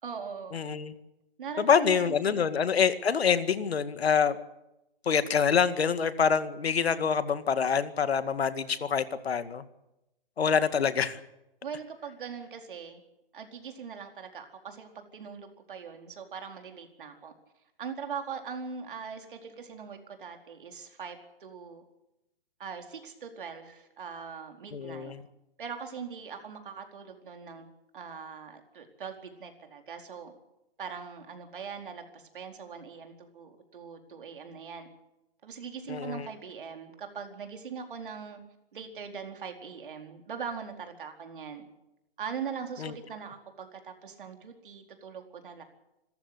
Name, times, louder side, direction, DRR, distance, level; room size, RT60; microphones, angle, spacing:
voice 1, 0.0-0.6 1.4-2.5 11.6-13.0 13.3-17.3 17.8-21.8 22.6-25.1 25.6-27.7 27.9-30.3 30.8-34.9 35.4-38.4 38.7-41.6 42.2-45.6, right 6 dB, 55° right, 5 dB, 4.4 m, -41 dB
voice 2, 0.5-0.9 1.6-4.4 5.1-9.6 10.4-11.2 24.7-25.2 35.9-36.3 42.8-42.9, left 6 dB, 85° left, 12 dB, 2.1 m, -26 dB
26.5 x 14.5 x 8.0 m, 0.90 s
hypercardioid pair, 175°, 30 cm